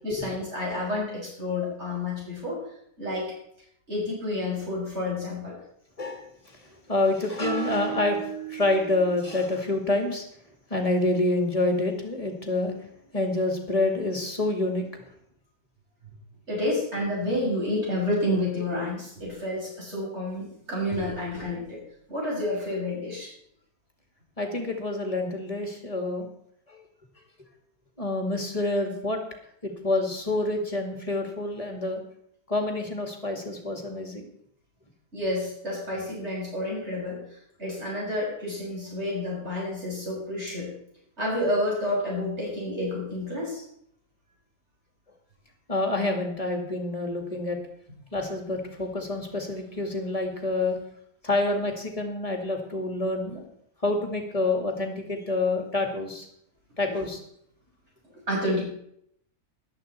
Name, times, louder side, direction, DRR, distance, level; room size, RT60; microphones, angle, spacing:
voice 1, 0.0-2.6 3.0-3.3 3.9-5.6 16.5-21.8 22.1-23.3 35.1-37.2 37.6-40.7 41.2-43.6 58.3-58.6, left 1 dB, 45° right, -4 dB, 6.8 m, -29 dB
voice 2, 6.0-10.3 10.7-12.9 13.1-15.0 24.4-26.3 26.7-26.8 28.0-29.2 29.6-32.0 32.5-34.3 45.7-47.6 48.1-50.8 51.2-53.5 53.8-56.3 56.8-57.2, left 2 dB, 25° left, 4 dB, 2.2 m, -27 dB
14.0 x 11.0 x 4.4 m, 0.69 s
omnidirectional pair, 1.6 m